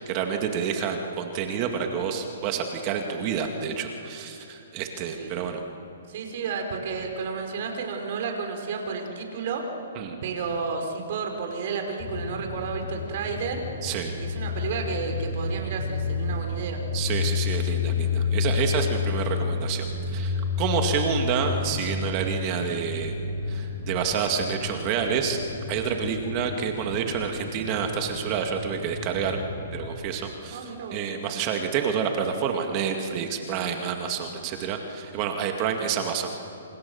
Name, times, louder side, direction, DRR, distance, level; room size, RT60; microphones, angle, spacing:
voice 1, 0.0-5.6 10.0-10.2 13.8-14.1 16.9-23.1 23.5-25.4 25.7-29.4 29.7-36.3, right 7 dB, 30° right, 4 dB, 2.2 m, -28 dB
voice 2, 5.2-5.5 6.1-9.6 10.2-13.6 14.1-16.8 24.7-24.8 30.5-31.0, right 5 dB, 50° right, 3 dB, 5.0 m, -32 dB
sound 1, 12.0-29.9, left 5 dB, 40° left, 4.4 m, -31 dB
28.5 x 27.0 x 7.2 m, 2.9 s
hypercardioid pair, 150°, 0 cm